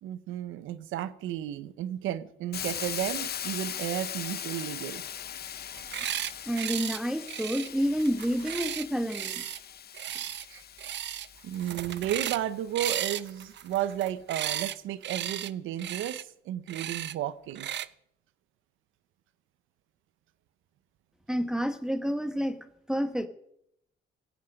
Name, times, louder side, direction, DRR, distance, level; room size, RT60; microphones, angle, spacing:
voice 1, 0.0-5.0 10.5-10.7 11.4-17.7, right 12 dB, 90° right, 0.9 m, -33 dB
Hiss, 2.5-12.4, left 9 dB, 50° left, 0.8 m, -40 dB
sound 1, 5.7-6.3 6.6-7.0 7.3-9.6 9.9-10.5 10.8-11.3 11.5-12.4 12.8-14.8 15.0-15.5 15.8-16.2 16.7-17.1 17.6-17.9, right 11 dB, 65° right, 0.8 m, -35 dB
voice 2, 6.5-9.4 21.3-23.3, equal, 5° right, 1.2 m, -29 dB
17.0 x 15.5 x 5.3 m
cardioid pair, 90°, 20 cm